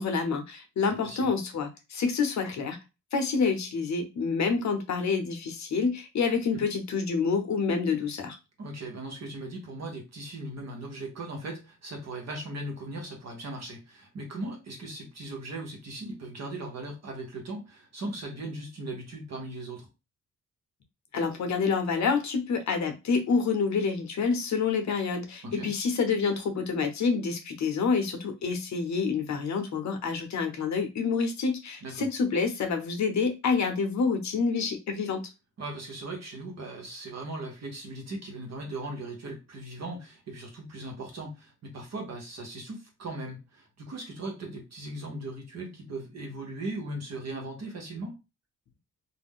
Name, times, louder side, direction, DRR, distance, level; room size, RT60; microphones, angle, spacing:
voice 1, 0.0-2.8 3.1-8.4 21.1-35.2, left 5 dB, 60° left, 5 dB, 0.7 m, -28 dB
voice 2, 8.6-19.9 25.4-25.7 31.8-32.1 35.6-48.2, right 2 dB, 55° right, 1 dB, 0.9 m, -38 dB
2.4 x 2.0 x 3.5 m, 0.26 s
cardioid pair, 115°, 31 cm